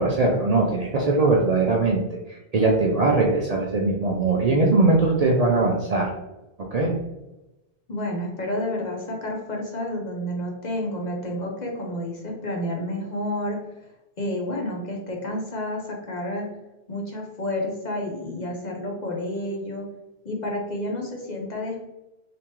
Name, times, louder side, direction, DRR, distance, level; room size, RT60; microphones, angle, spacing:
voice 1, 0.0-2.0 2.3-6.1 6.7-6.9, right 3 dB, 50° right, -1 dB, 0.5 m, -21 dB
voice 2, 7.9-13.6 14.2-16.5 16.9-19.8 20.2-21.9, left 1 dB, 45° left, -1 dB, 0.7 m, -30 dB
3.5 x 2.9 x 2.9 m, 0.97 s
omnidirectional pair, 1.1 m